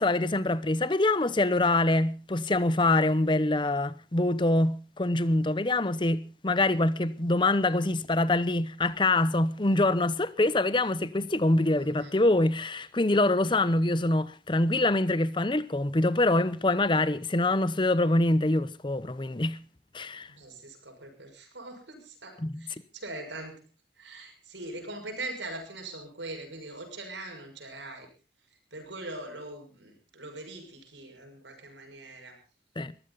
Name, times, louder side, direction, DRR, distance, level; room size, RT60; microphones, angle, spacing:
voice 1, 0.0-19.6 19.9-20.3 22.4-22.6 32.8-32.9, left 2 dB, 25° left, 0.8 m, -25 dB
voice 2, 11.8-12.1 20.3-23.6 24.0-28.1 28.7-32.4, right 2 dB, 85° right, 6.2 m, -42 dB
21.0 x 15.0 x 4.0 m
head